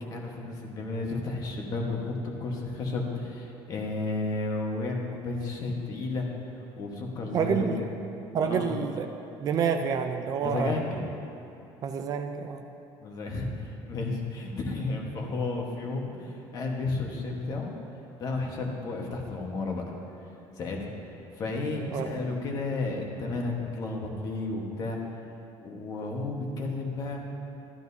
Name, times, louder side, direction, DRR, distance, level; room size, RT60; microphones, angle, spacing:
voice 1, 0.0-6.3 6.8-7.9 8.4-8.7 10.4-11.0 13.0-17.7 18.2-19.8 20.6-20.9 21.3-25.0 25.6-27.3, left 3 dB, 40° left, 0 dB, 1.3 m, -32 dB
voice 2, 7.3-7.8 8.3-9.1 9.4-10.8 11.8-12.6 21.9-22.1, right 6 dB, 40° right, 6 dB, 0.5 m, -28 dB
13.5 x 12.0 x 2.7 m, 2.9 s
cardioid pair, 165°, 10 cm